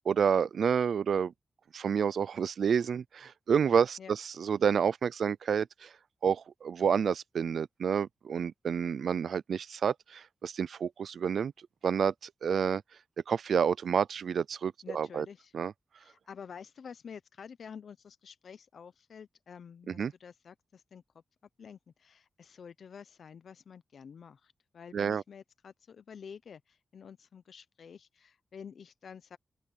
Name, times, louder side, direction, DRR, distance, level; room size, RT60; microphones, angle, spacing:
voice 1, 0.1-1.3 1.7-5.9 6.2-11.5 11.8-12.8 13.3-15.3 15.5-15.7 19.9-20.1 24.9-25.2, right 7 dB, 80° right, 0.4 m, -29 dB
voice 2, 14.8-15.5 16.0-21.0 21.6-29.4, left 7 dB, 75° left, 0.7 m, -49 dB
open air
wide cardioid pair, 135°, 0 cm